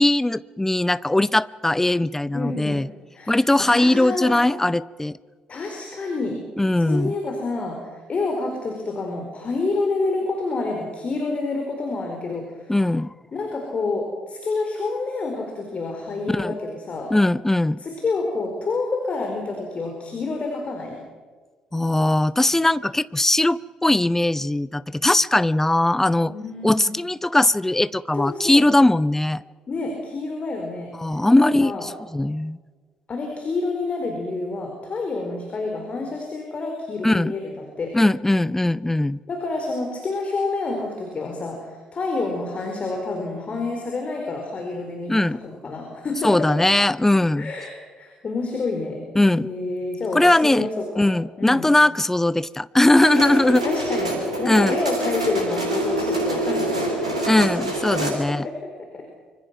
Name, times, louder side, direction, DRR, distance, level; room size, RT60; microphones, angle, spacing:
voice 1, 0.0-2.9 3.3-5.2 6.6-7.1 12.7-13.1 16.3-16.5 17.1-17.8 21.7-26.3 26.6-29.4 31.0-32.6 37.0-37.3 37.9-39.2 45.1-45.4 46.2-47.5 49.2-49.5 50.1-50.7 51.0-53.6 54.4-54.8 57.3-58.5, left 1 dB, 10° left, 20 dB, 0.6 m, -20 dB
voice 2, 2.3-2.9 3.1-4.4 5.5-6.4 6.8-12.7 13.3-17.1 17.8-21.0 26.3-27.0 28.1-28.7 29.7-30.9 31.3-31.9 33.1-38.0 39.3-46.7 47.4-49.1 49.4-51.0 51.4-51.7 53.6-57.3 58.1-59.0, left 3 dB, 40° left, 2 dB, 4.6 m, -28 dB
sound 1, 53.0-58.1, right 1 dB, 85° right, 3.2 m, -26 dB
25.5 x 24.5 x 5.9 m, 1.5 s
figure-of-eight pair, 45°, 3 cm